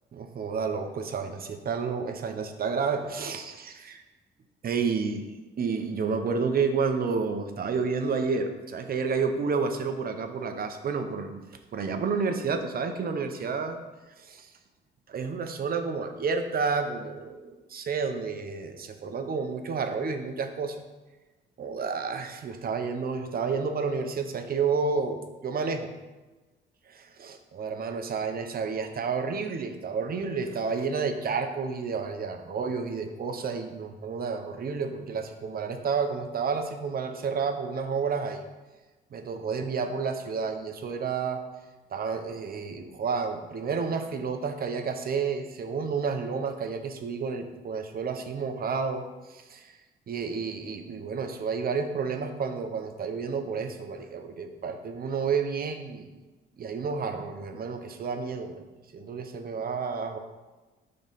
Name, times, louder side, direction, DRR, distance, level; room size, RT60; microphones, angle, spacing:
voice 1, 0.1-4.0 4.6-5.3 5.6-11.4 11.7-13.8 14.2-14.5 15.1-20.8 21.6-25.9 26.9-38.4 39.1-41.4 41.9-49.7 50.1-56.1 56.6-58.6 58.9-60.2, right 5 dB, 50° right, 6 dB, 0.8 m, -30 dB
5.4 x 3.9 x 5.5 m, 1.2 s
cardioid pair, 90°, 20 cm